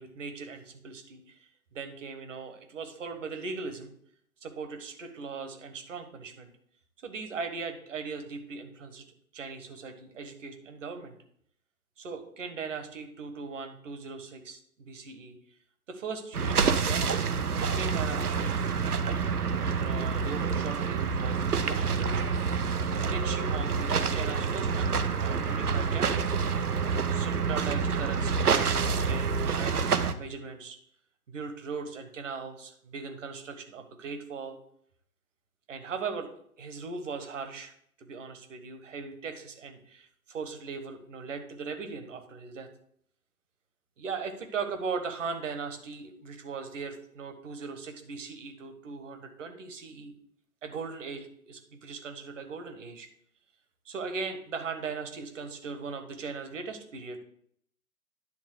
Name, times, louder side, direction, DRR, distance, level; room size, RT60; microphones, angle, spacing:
voice 1, 0.0-3.9 4.4-6.5 7.0-9.1 9.3-11.2 12.0-15.4 15.9-17.2 17.5-18.5 19.5-22.5 22.8-26.2 27.1-30.8 31.3-34.6 35.7-36.3 36.6-42.7 44.0-50.1 50.6-53.1 53.8-57.2, right 5 dB, 55° right, 7 dB, 1.4 m, -39 dB
busy canal, 16.3-30.1, right 5 dB, 80° right, 0.8 m, -27 dB
10.5 x 3.7 x 6.5 m, 0.67 s
figure-of-eight pair, 120°, 44 cm